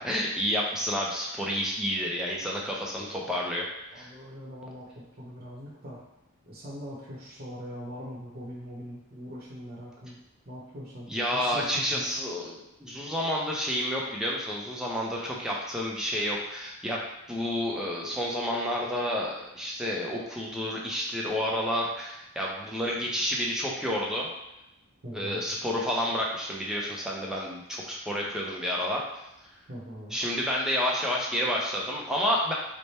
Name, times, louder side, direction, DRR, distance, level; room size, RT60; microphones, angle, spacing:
voice 1, 0.0-3.7 4.0-4.1 11.1-17.0 17.3-24.3 25.1-29.0 30.1-32.5, equal, 5° right, -3 dB, 0.5 m, -30 dB
voice 2, 3.9-6.0 6.5-12.1 25.0-25.4 29.7-30.2, equal, 45° right, -5 dB, 0.8 m, -42 dB
3.3 x 2.1 x 4.1 m, 0.89 s
head